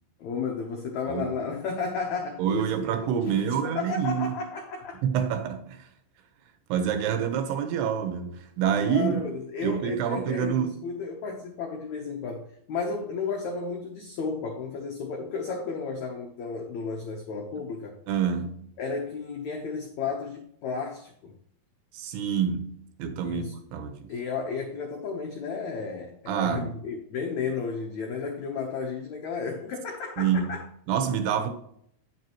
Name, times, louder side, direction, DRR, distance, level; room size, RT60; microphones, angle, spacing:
voice 1, 0.2-2.9 3.1-5.0 8.9-17.9 18.8-21.3 23.2-23.5 24.1-30.6, left 5 dB, 85° left, 1.6 m, -33 dB
voice 2, 2.4-4.4 5.0-5.9 6.7-9.3 9.6-10.8 18.1-18.7 21.9-24.1 26.3-26.7 30.2-30.5 30.9-31.5, right 8 dB, 80° right, 3.0 m, -27 dB
8.6 x 7.8 x 3.0 m
omnidirectional pair, 4.7 m